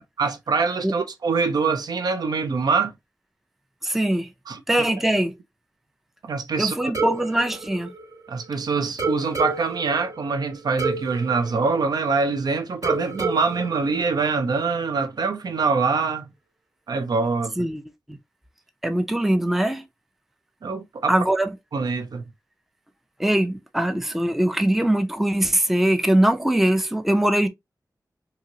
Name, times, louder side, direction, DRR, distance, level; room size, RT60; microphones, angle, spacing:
voice 1, 0.2-2.9 4.5-4.6 6.2-6.9 8.3-16.3 16.9-17.5 20.6-21.1 21.7-22.2, right 4 dB, 80° right, 0.5 m, -24 dB
voice 2, 3.8-4.3 4.7-5.3 6.6-7.9 17.6-17.8 18.1-18.2 18.8-19.8 21.1-21.5 23.2-27.5, right 1 dB, 5° right, 0.4 m, -21 dB
sound 1, 6.9-8.5 9.0-12.4 12.8-14.8, right 3 dB, 60° right, 1.2 m, -31 dB
2.9 x 2.7 x 2.6 m
wide cardioid pair, 90°, 7 cm